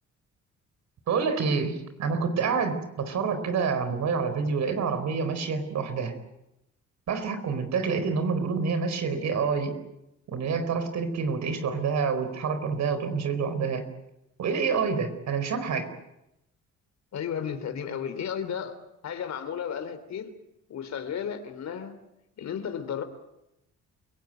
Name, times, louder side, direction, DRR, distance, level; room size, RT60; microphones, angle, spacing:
voice 1, 1.1-6.1 7.1-9.7 10.3-13.8 14.4-15.9, right 5 dB, 65° right, 10 dB, 4.6 m, -27 dB
voice 2, 17.1-18.8 19.0-20.3 20.7-22.0 22.4-23.0, left 8 dB, 65° left, 10 dB, 3.4 m, -33 dB
29.0 x 17.5 x 9.2 m, 0.88 s
cardioid pair, 90°, 30 cm